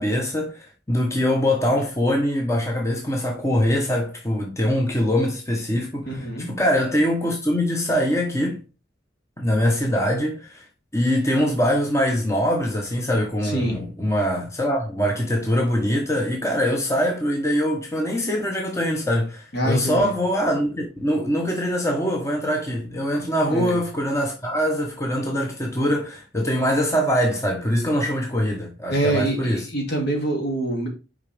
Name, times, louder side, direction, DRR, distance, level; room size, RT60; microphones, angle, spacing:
voice 1, 0.0-8.6 9.4-10.6 10.9-29.7, equal, 15° left, 1.0 m, -23 dB
voice 2, 6.1-6.5 13.4-13.8 19.5-20.1 23.5-23.8 28.9-30.9, right 1 dB, 60° left, 2.5 m, -25 dB
6.4 x 5.1 x 3.4 m
head